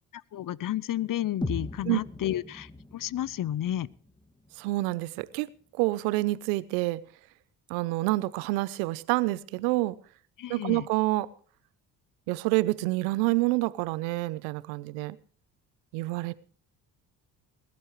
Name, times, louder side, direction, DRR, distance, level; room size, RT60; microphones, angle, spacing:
voice 1, 0.1-3.9 10.4-10.9, left 12 dB, 40° left, 23 dB, 0.7 m, -32 dB
sound 1, 1.4-5.4, left 1 dB, 10° left, 2.1 m, -40 dB
voice 2, 4.6-5.5 5.8-7.0 7.7-10.0 10.5-11.3 12.3-15.2 15.9-16.3, right 20 dB, 80° right, 19 dB, 0.8 m, -27 dB
21.5 x 13.0 x 3.2 m, 0.43 s
hypercardioid pair, 55°, 49 cm